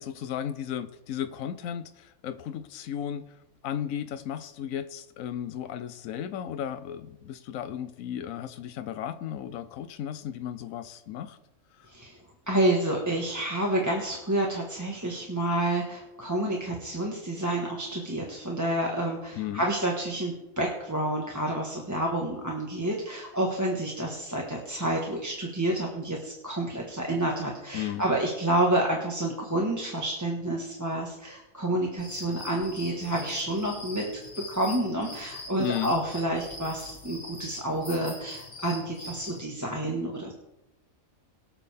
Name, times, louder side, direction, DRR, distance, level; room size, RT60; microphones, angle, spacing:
voice 1, 0.0-3.3 3.6-11.4 11.8-11.9 19.4-19.7 27.7-28.0 35.6-36.0, left 10 dB, 85° left, 10 dB, 1.0 m, -35 dB
voice 2, 11.9-12.2 12.5-34.1 34.4-40.3, right 1 dB, 15° right, -1 dB, 1.4 m, -29 dB
sound 1, 32.0-39.4, left 2 dB, 50° left, 2.5 m, -43 dB
22.5 x 7.6 x 3.5 m, 0.94 s
omnidirectional pair, 1.4 m